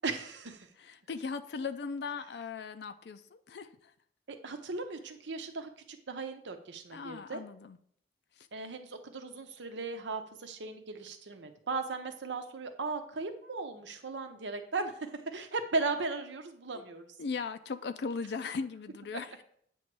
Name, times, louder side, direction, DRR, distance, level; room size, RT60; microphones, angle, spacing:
voice 1, 0.0-0.7 4.3-7.4 8.5-17.1, right 3 dB, 85° right, 6 dB, 0.9 m, -37 dB
voice 2, 0.8-3.9 6.9-7.8 8.4-8.5 16.7-16.8 17.2-19.4, left 5 dB, 65° left, 9 dB, 0.4 m, -38 dB
8.7 x 3.1 x 6.1 m, 0.65 s
head